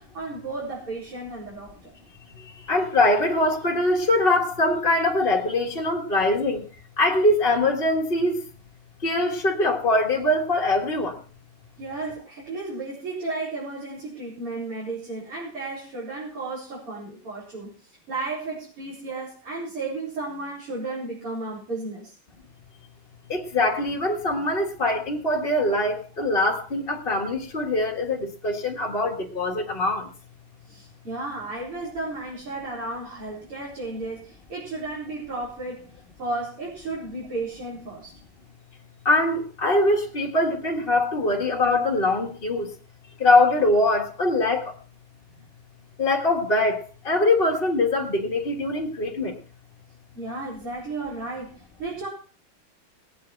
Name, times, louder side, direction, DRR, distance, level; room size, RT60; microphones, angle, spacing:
voice 1, 0.0-1.9 11.8-22.2 30.7-35.9 36.2-38.1 50.2-52.1, right 3 dB, 85° right, -7 dB, 5.4 m, -33 dB
voice 2, 2.4-6.6 7.0-8.4 9.0-11.2 23.3-30.1 39.0-42.6 43.2-44.7 46.0-49.4, left 2 dB, 30° left, -2 dB, 1.6 m, -23 dB
19.5 x 8.6 x 4.5 m, 0.39 s
omnidirectional pair, 2.4 m